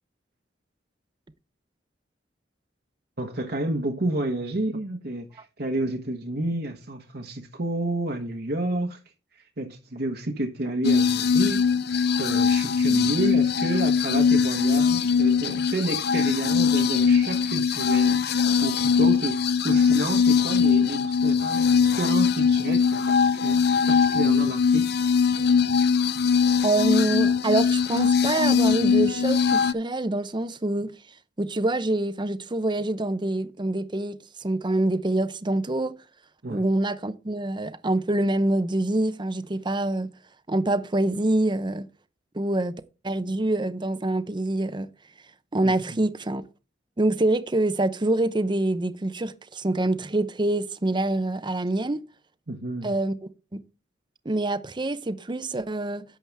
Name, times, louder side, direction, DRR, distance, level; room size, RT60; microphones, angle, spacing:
voice 1, 3.2-9.0 9.3-11.6 11.9-24.9 36.4-36.6 45.6-45.7 52.5-52.9, right 1 dB, 60° right, 1.3 m, -30 dB
sound 1, 10.8-29.7, left 6 dB, 60° left, 0.6 m, -21 dB
voice 2, 26.6-30.9 31.4-36.0 36.5-40.1 40.5-41.9 42.3-42.7 43.0-44.9 45.5-46.4 47.0-52.0 52.8-53.1 53.5-53.6 54.2-56.0, right 2 dB, 25° right, 0.7 m, -25 dB
11.0 x 7.8 x 3.5 m
head